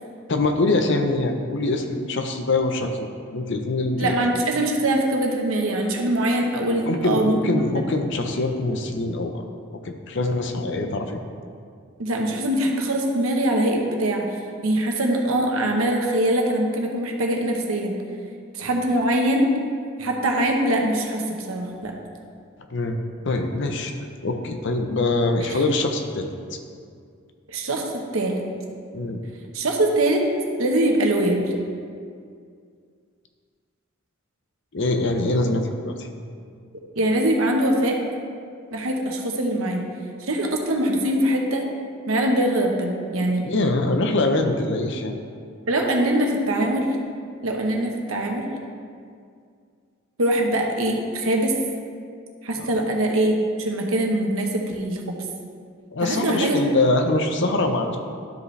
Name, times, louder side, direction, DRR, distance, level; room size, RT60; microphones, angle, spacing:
voice 1, 0.3-3.0 3.3-4.1 6.9-9.4 9.8-11.2 22.7-23.0 23.2-23.9 24.2-26.6 28.9-29.2 34.7-36.1 43.5-45.1 52.6-52.7 55.9-58.0, left 2 dB, 60° left, 5 dB, 0.7 m, -23 dB
voice 2, 4.0-7.8 12.0-14.2 14.6-18.0 18.5-19.5 20.0-21.9 25.5-25.6 27.5-28.4 29.5-30.2 30.6-31.4 37.0-38.0 38.7-39.8 40.3-41.6 42.1-43.4 45.7-46.9 47.4-48.5 50.2-51.6 52.4-55.1 56.0-56.7, right 1 dB, 85° right, 1 dB, 1.0 m, -22 dB
12.0 x 5.2 x 3.3 m, 2.2 s
head